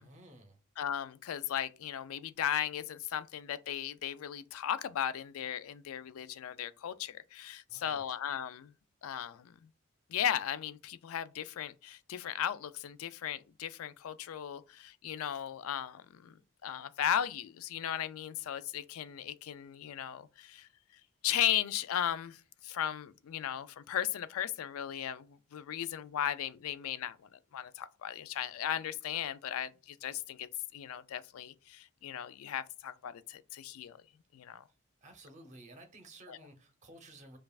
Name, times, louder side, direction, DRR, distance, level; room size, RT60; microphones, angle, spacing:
voice 1, 0.0-0.6 7.7-8.0 35.0-37.4, right 1 dB, 35° right, 0.7 m, -54 dB
voice 2, 0.8-8.7 9.0-9.6 10.1-20.7 21.2-34.0 34.3-34.6 36.3-36.4, left 10 dB, 75° left, 0.3 m, -36 dB
5.3 x 2.3 x 2.3 m
head